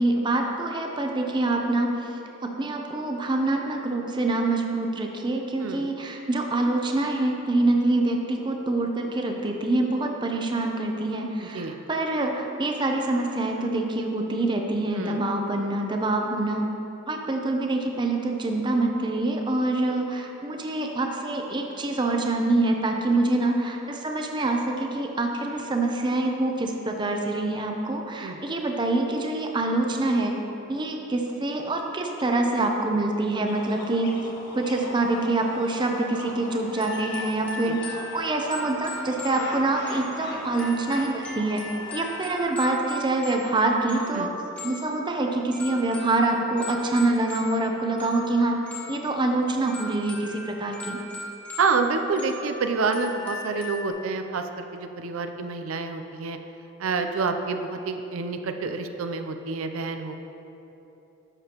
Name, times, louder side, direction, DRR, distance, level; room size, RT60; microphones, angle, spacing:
voice 1, 0.0-2.1 2.4-16.7 17.1-30.3 30.7-34.2 34.5-41.6 41.9-44.3 44.6-48.6 48.9-51.0, right 2 dB, 20° right, 2 dB, 0.6 m, -25 dB
voice 2, 11.4-11.8 15.0-15.2 23.1-23.2 28.2-28.4 37.6-37.8 44.1-44.3 51.6-56.4 56.8-60.1, right 4 dB, 85° right, 7 dB, 0.5 m, -28 dB
sound 1, 33.5-42.4, left 2 dB, 55° left, 1.0 m, -40 dB
sound 2, 36.7-53.9, left 2 dB, 10° left, 1.4 m, -40 dB
11.0 x 6.7 x 2.9 m, 2.9 s
head